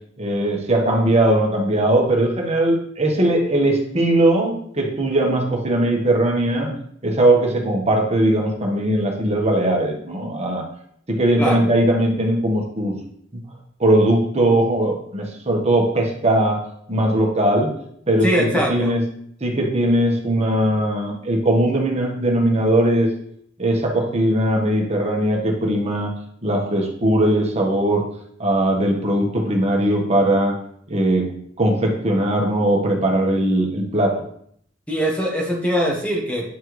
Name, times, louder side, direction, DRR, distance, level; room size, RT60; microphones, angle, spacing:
voice 1, 0.2-6.7 7.0-10.7 11.1-12.9 13.3-13.4 13.8-16.6 16.9-17.7 18.1-18.3 18.5-19.0 19.4-23.1 23.6-26.1 26.4-28.0 28.4-30.5 30.9-31.3 31.6-34.2, right 1 dB, 35° right, 0 dB, 1.2 m, -19 dB
voice 2, 18.2-19.0 34.9-36.5, equal, 5° left, -2 dB, 0.9 m, -22 dB
9.4 x 4.4 x 3.1 m, 0.66 s
head